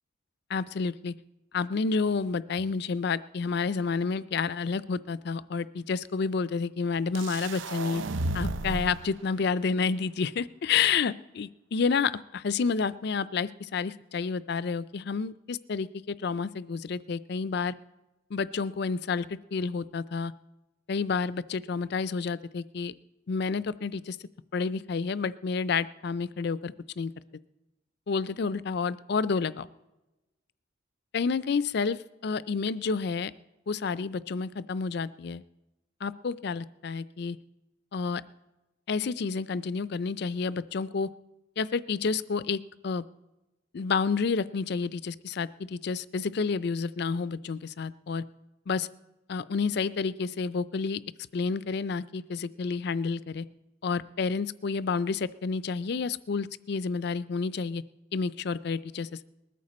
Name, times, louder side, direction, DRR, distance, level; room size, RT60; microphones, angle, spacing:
voice 1, 0.5-1.1 1.5-8.0 8.3-17.7 18.3-20.3 20.9-22.9 23.3-24.2 24.5-27.1 28.1-29.7 31.1-33.3 33.7-35.4 36.0-37.4 37.9-38.2 38.9-41.1 41.6-43.0 43.7-48.2 48.7-48.9 49.3-51.0 51.3-53.4 53.8-57.8 58.1-59.3, left 5 dB, 55° left, 17 dB, 0.4 m, -30 dB
sound 1, 7.1-9.1, right 2 dB, 75° right, 0.6 m, -33 dB
20.0 x 13.5 x 4.2 m, 1.0 s
head